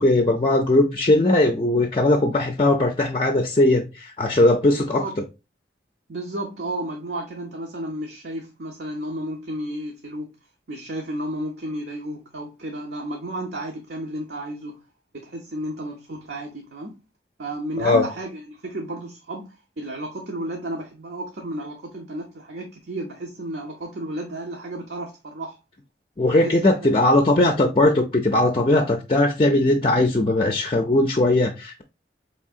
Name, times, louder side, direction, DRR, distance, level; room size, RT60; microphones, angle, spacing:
voice 1, 0.0-5.0 17.8-18.0 26.2-31.8, left 2 dB, 30° left, 0.5 m, -19 dB
voice 2, 4.7-5.2 6.1-10.3 10.7-14.8 15.1-17.0 17.4-25.6 26.3-27.3, right 1 dB, 65° right, 0.8 m, -32 dB
4.5 x 3.4 x 2.4 m
head